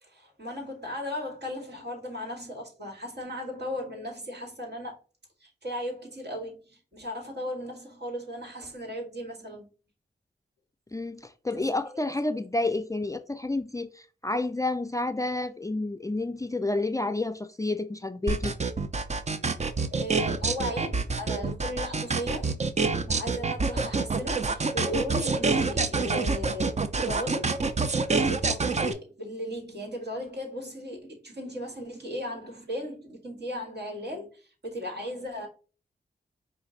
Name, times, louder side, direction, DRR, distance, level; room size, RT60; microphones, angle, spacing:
voice 1, 0.0-5.0 5.4-9.7 11.5-11.7 11.9-12.1 19.9-22.6 23.0-27.6 28.2-35.5, left 1 dB, 65° right, 2.1 m, -36 dB
voice 2, 10.9-18.5, left 2 dB, 15° left, 0.4 m, -30 dB
sound 1, 18.3-28.9, right 4 dB, 40° right, 0.5 m, -26 dB
5.0 x 2.6 x 3.9 m
cardioid pair, 55°, 19 cm